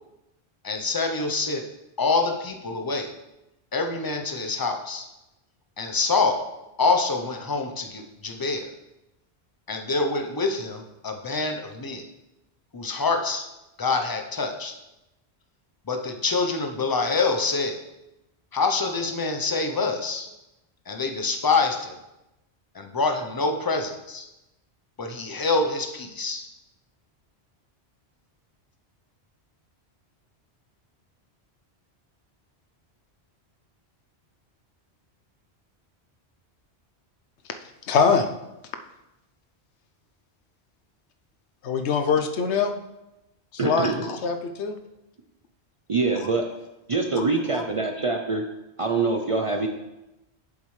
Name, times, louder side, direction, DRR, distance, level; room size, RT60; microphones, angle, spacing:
voice 1, 0.6-1.6 2.0-3.1 3.7-5.1 5.8-6.5 6.8-8.7 9.7-12.0 12.7-13.4 13.8-14.7 15.9-17.8 18.5-20.3 20.9-22.0 22.7-24.3 25.0-26.4, left 3 dB, 25° left, 5 dB, 0.6 m, -26 dB
voice 2, 37.8-38.3 41.6-42.7 43.5-44.8 46.2-46.3 47.2-47.3 47.5-47.6, left 5 dB, 85° left, 7 dB, 1.0 m, -23 dB
voice 3, 43.6-44.0 45.9-46.5 46.9-48.4 48.8-49.7, right 3 dB, 40° right, 3 dB, 0.5 m, -24 dB
7.4 x 7.3 x 3.2 m, 0.94 s
omnidirectional pair, 1.1 m